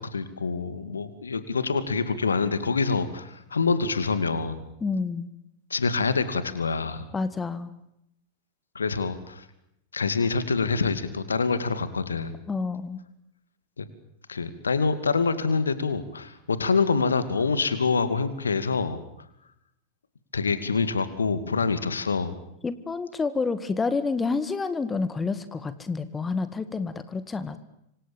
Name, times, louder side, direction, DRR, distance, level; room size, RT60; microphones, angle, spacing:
voice 1, 0.1-4.6 5.7-7.1 8.7-9.4 9.9-12.3 13.8-13.9 14.3-19.0 20.3-22.3, left 4 dB, 75° left, 13 dB, 2.5 m, -26 dB
voice 2, 4.8-5.3 7.1-7.7 12.5-13.0 22.6-27.6, left 4 dB, 15° left, 14 dB, 1.8 m, -29 dB
27.0 x 25.5 x 7.2 m, 0.79 s
figure-of-eight pair, 90°, 0 cm